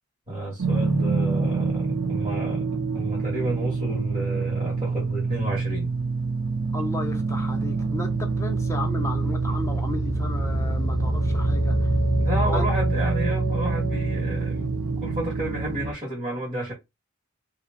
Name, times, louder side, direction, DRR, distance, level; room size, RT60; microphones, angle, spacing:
voice 1, 0.3-5.9 12.2-16.7, right 1 dB, 30° right, 1.7 m, -31 dB
sound 1, 0.6-15.9, right 3 dB, 85° right, 1.0 m, -25 dB
voice 2, 6.7-11.9 12.4-12.7, left 2 dB, 15° left, 0.8 m, -34 dB
3.0 x 2.8 x 3.7 m
head